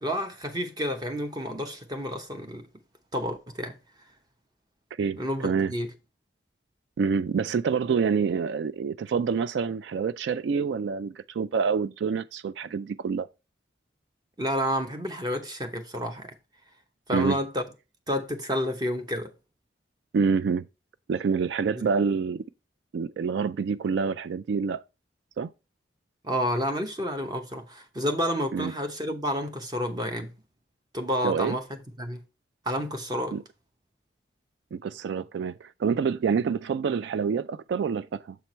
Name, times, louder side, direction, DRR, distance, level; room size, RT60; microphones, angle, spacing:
voice 1, 0.0-2.6 3.1-3.8 5.2-5.9 14.4-16.3 17.1-17.6 18.1-19.3 21.8-21.9 26.2-30.3 30.9-31.6 32.0-32.2 32.7-33.4, equal, 20° right, 0.8 m, -30 dB
voice 2, 5.0-5.7 7.0-13.3 17.1-17.4 20.1-20.7 21.1-22.4 22.9-24.8 25.4-25.5 28.5-28.7 31.2-31.6 33.3-33.4 34.7-38.4, right 5 dB, 75° right, 0.3 m, -27 dB
6.8 x 4.5 x 4.3 m
head